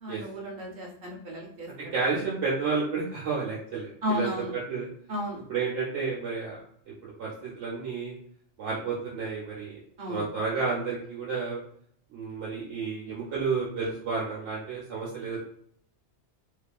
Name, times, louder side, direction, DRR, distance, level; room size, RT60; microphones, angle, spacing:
voice 1, 0.0-1.9 4.0-4.5 5.1-5.4 10.0-10.3 13.1-13.2, equal, 55° right, -1 dB, 0.9 m, -33 dB
voice 2, 1.9-4.9 5.5-6.6 7.0-7.3 7.6-8.1 8.6-9.8 10.1-11.6 12.1-15.4, right 4 dB, 80° right, -6 dB, 1.0 m, -31 dB
2.6 x 2.4 x 2.2 m, 0.65 s
omnidirectional pair, 1.2 m